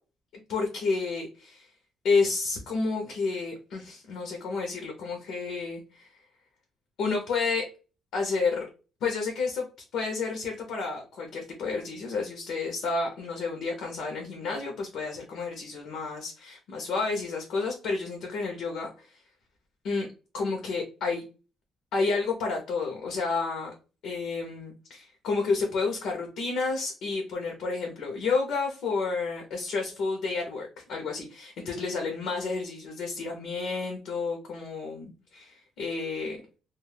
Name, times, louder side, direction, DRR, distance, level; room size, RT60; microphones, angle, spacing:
voice 1, 0.5-1.7 2.0-6.1 7.0-7.6 8.1-8.6 9.0-9.7 9.9-18.9 19.8-20.1 20.3-21.2 21.9-23.7 24.0-36.4, left 4 dB, 80° left, 1 dB, 0.6 m, -30 dB
2.2 x 2.0 x 3.2 m, 0.33 s
cardioid pair, 90°, 0 cm